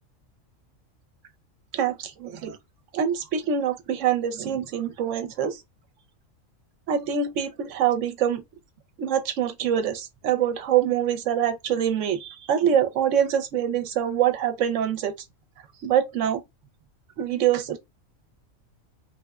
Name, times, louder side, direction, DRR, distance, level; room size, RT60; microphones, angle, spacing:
voice 1, 1.7-2.6 2.9-5.6 6.9-8.4 9.0-15.1 15.8-16.4 17.2-17.8, right 9 dB, 70° right, 0.9 m, -24 dB
3.2 x 2.1 x 2.3 m
omnidirectional pair, 1.4 m